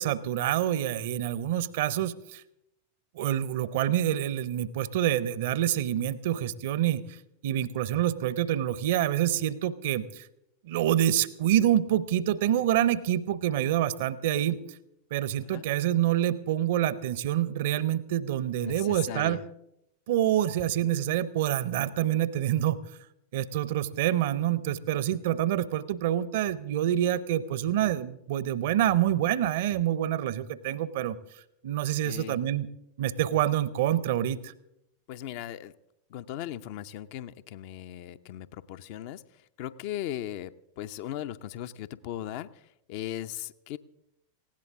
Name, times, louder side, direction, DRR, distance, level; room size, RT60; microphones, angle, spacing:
voice 1, 0.0-2.4 3.1-7.0 7.4-10.3 10.6-14.6 15.1-19.4 20.1-22.8 23.3-31.2 31.6-32.7 33.0-34.5, right 12 dB, 55° right, 18 dB, 0.7 m, -27 dB
voice 2, 18.6-19.4 32.0-32.4 35.1-35.7 36.1-43.8, left 12 dB, 45° left, 12 dB, 0.6 m, -38 dB
19.0 x 16.5 x 3.6 m, 0.82 s
figure-of-eight pair, 90°, 0 cm